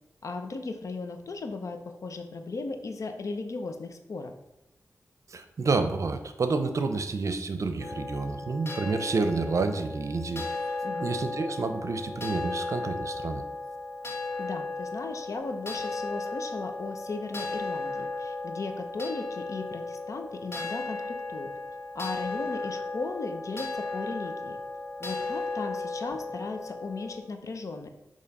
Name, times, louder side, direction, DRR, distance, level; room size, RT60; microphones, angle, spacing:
voice 1, 0.2-4.3 10.8-11.1 14.4-21.5 21.9-24.6 25.0-27.9, left 3 dB, 70° left, 6 dB, 0.8 m, -36 dB
voice 2, 5.3-10.7 11.0-13.4, right 3 dB, 65° right, 8 dB, 0.6 m, -29 dB
sound 1, 7.8-27.2, left 3 dB, 50° left, 1.7 m, -35 dB
6.6 x 3.2 x 5.4 m, 0.92 s
cardioid pair, 60°, 6 cm